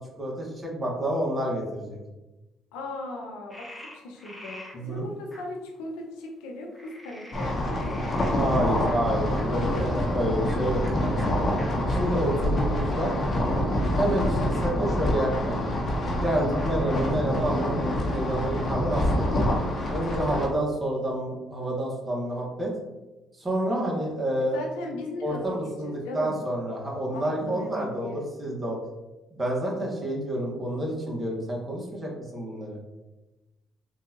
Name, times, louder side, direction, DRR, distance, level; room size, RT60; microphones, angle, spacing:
voice 1, 0.2-2.0 4.7-5.0 8.4-11.4 11.9-13.1 14.0-14.3 14.6-15.6 16.2-19.3 19.9-22.7 23.4-24.6 25.2-28.8 29.3-32.8, right 1 dB, 30° right, -3 dB, 1.2 m, -29 dB
voice 2, 2.7-9.9 13.9-14.2 24.5-26.4 27.1-28.2, left 2 dB, 90° left, 1 dB, 0.6 m, -38 dB
Frog, 3.5-4.7 5.3-5.4 6.7-9.5 10.4-10.6 10.8-10.9 11.2-11.3 11.6-11.7 12.3-13.0, left 1 dB, 5° left, 1.2 m, -45 dB
sound 1, 7.3-20.5, left 1 dB, 45° left, 0.8 m, -26 dB
3.7 x 2.4 x 2.8 m, 1.1 s
supercardioid pair, 70°, 0 cm